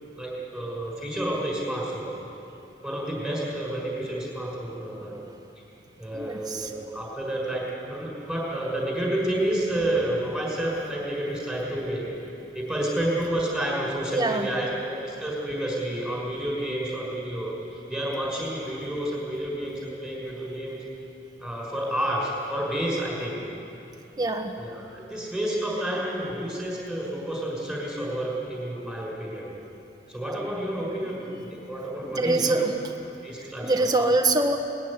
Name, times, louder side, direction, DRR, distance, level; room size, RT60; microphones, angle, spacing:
voice 1, 0.1-2.1 2.8-5.1 6.0-12.1 12.5-20.8 21.4-23.4 24.6-29.5 30.1-32.7 33.2-34.2, right 1 dB, ahead, -3 dB, 5.7 m, -30 dB
voice 2, 6.1-6.7 14.1-14.5 24.2-24.5 32.0-32.7 33.6-34.6, right 2 dB, 20° right, 4 dB, 1.4 m, -24 dB
20.0 x 14.5 x 9.8 m, 2.9 s
head